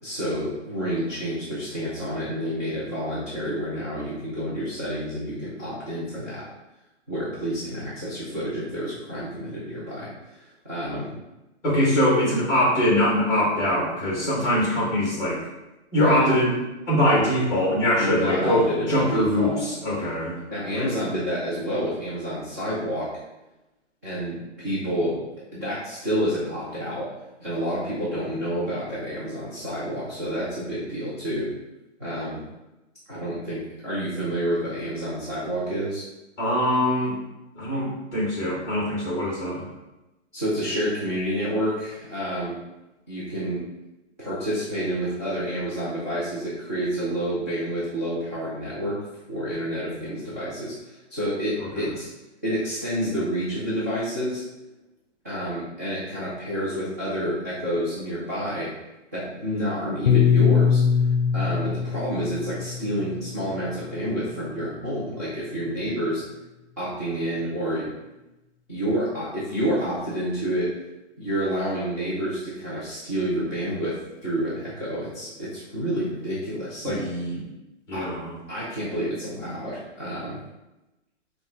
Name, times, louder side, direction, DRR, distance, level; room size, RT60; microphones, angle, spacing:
voice 1, 0.0-6.4 7.1-11.2 15.9-16.3 17.9-19.6 20.5-23.1 24.0-25.3 25.5-27.1 27.4-31.5 32.0-32.4 33.1-36.0 40.3-42.6 43.1-43.6 44.2-49.0 49.3-52.1 52.4-54.4 55.2-58.7 59.1-60.8 61.3-66.2 66.8-67.9 68.7-70.7 71.2-73.9 74.2-77.0 77.9-78.1 78.5-80.4, equal, 15° right, -12 dB, 0.5 m, -29 dB
voice 2, 11.6-15.4 15.9-16.5 16.9-20.4 20.7-20.9 36.4-37.1 37.5-39.7 51.7-51.9 76.8-77.4 77.9-78.4, left 1 dB, 10° left, -6 dB, 1.3 m, -23 dB
Piano, 60.1-64.5, left 7 dB, 55° left, 0.8 m, -22 dB
5.1 x 2.4 x 3.9 m, 0.99 s
hypercardioid pair, 175°, 37 cm